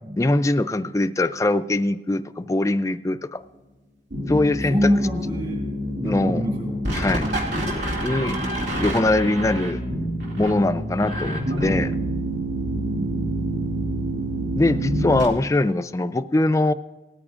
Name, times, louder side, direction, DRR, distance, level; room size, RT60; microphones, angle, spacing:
voice 1, 0.2-3.4 4.3-4.9 6.0-6.4 6.9-7.3 8.0-8.4 8.8-9.8 10.4-12.0 14.5-16.7, left 2 dB, 20° left, 12 dB, 0.3 m, -22 dB
sound 1, 4.1-15.3, right 1 dB, 80° right, 2.5 m, -27 dB
voice 2, 4.5-5.7 5.9-6.8 7.1-7.4 12.5-13.1, equal, 35° right, -6 dB, 3.9 m, -26 dB
18.5 x 13.5 x 2.5 m, 1.1 s
head